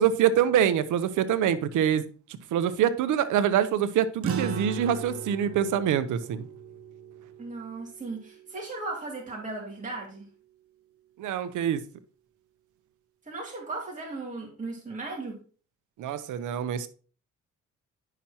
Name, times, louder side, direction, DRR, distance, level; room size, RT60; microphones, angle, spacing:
voice 1, 0.0-2.0 2.5-6.5 11.2-11.8 16.0-16.9, right 9 dB, 80° right, 0.8 m, -25 dB
sound 1, 4.2-8.9, right 5 dB, 50° right, 1.1 m, -37 dB
voice 2, 7.4-10.3 13.3-15.4, right 3 dB, 25° right, 2.5 m, -36 dB
10.0 x 5.9 x 2.9 m
cardioid pair, 90°, 30 cm